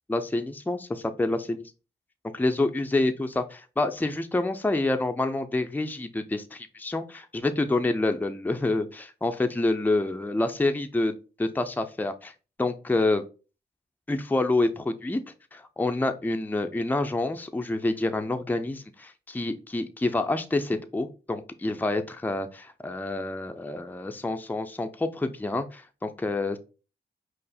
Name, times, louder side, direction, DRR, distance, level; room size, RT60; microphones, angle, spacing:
voice 1, 0.1-1.6 2.3-12.3 12.6-13.2 14.1-15.2 15.5-26.6, left 2 dB, 10° left, 7 dB, 0.5 m, -27 dB
5.2 x 2.0 x 4.2 m, 0.34 s
cardioid pair, 50°, 17 cm